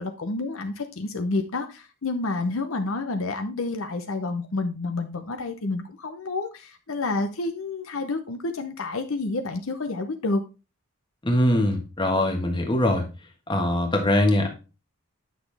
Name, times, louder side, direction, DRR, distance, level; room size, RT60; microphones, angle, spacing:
voice 1, 0.0-10.4, left 3 dB, 65° left, 7 dB, 0.8 m, -29 dB
voice 2, 11.2-13.0 13.5-14.5, left 1 dB, 20° left, 3 dB, 1.5 m, -22 dB
9.4 x 6.1 x 3.4 m, 0.30 s
head